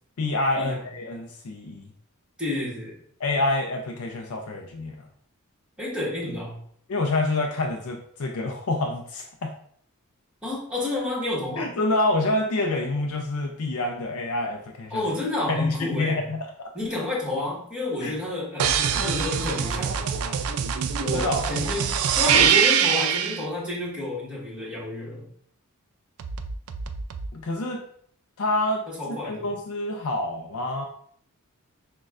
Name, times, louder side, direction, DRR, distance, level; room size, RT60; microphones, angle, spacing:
voice 1, 0.2-1.9 3.2-5.0 6.9-9.5 11.6-15.0 15.5-16.4 18.0-18.1 21.1-21.4 27.3-27.8 28.4-30.9, left 2 dB, 75° left, 2 dB, 0.5 m, -27 dB
voice 2, 2.4-2.9 5.8-6.6 10.4-11.7 14.9-16.2 16.7-20.4 21.0-25.3 28.9-29.5, left 2 dB, 5° right, -7 dB, 1.3 m, -30 dB
sound 1, 18.6-23.4 26.2-27.3, right 8 dB, 70° right, 0.3 m, -24 dB
6.3 x 2.2 x 2.4 m, 0.62 s
head